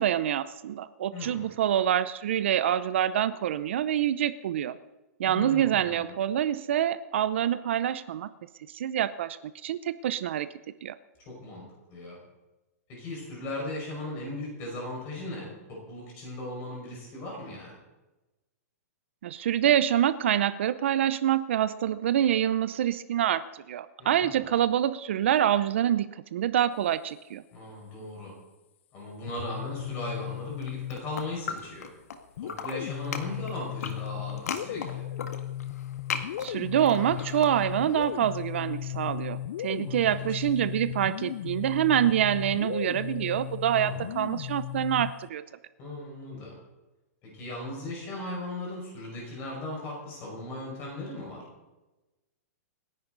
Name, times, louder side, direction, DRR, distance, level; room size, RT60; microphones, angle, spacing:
voice 1, 0.0-4.8 5.2-8.3 8.7-9.4 9.6-10.5 10.8-10.9 19.2-27.4 36.4-45.4, right 10 dB, 45° right, 14 dB, 0.6 m, -26 dB
voice 2, 1.1-1.5 5.2-6.1 11.3-12.2 12.9-17.7 24.0-24.5 27.5-28.3 28.9-31.9 32.4-35.0 39.7-40.4 43.7-44.1 45.8-46.6 47.2-51.4, left 2 dB, 25° left, -2 dB, 5.4 m, -38 dB
sound 1, 29.3-31.4 32.4-45.3, left 12 dB, 45° left, 0.4 m, -36 dB
sound 2, 30.5-32.2 32.4-38.1, left 6 dB, 70° left, 1.8 m, -38 dB
27.5 x 11.0 x 4.0 m, 1.1 s
hypercardioid pair, 175°, 9 cm